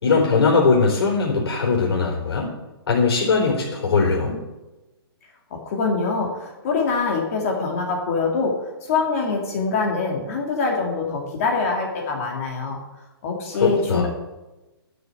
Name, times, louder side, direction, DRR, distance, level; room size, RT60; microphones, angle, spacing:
voice 1, 0.0-2.5 2.9-4.4 13.6-14.1, left 4 dB, 75° left, -1 dB, 4.3 m, -20 dB
voice 2, 5.6-8.5 8.8-12.8 13.2-14.1, left 4 dB, 35° left, 1 dB, 2.5 m, -24 dB
11.5 x 6.6 x 8.4 m, 1.1 s
hypercardioid pair, 170°, 13 cm